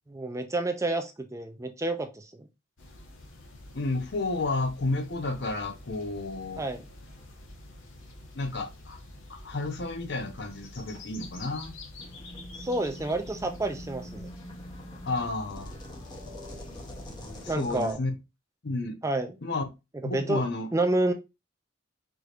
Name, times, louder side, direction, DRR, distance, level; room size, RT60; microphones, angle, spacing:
voice 1, 0.1-2.5 6.6-6.8 12.6-14.3 17.5-18.0 19.0-19.4 20.1-20.4 20.7-21.1, right 2 dB, 15° right, 0.4 m, -29 dB
sound 1, 2.8-17.5, left 2 dB, 80° left, 1.2 m, -47 dB
voice 2, 3.7-6.6 8.3-9.0 9.3-11.7 15.0-15.8 17.4-18.1 18.6-19.0 19.4-19.7 20.0-20.7, left 2 dB, 60° left, 0.8 m, -31 dB
sound 2, 12.0-17.9, equal, 20° left, 0.9 m, -44 dB
4.8 x 3.0 x 2.5 m
head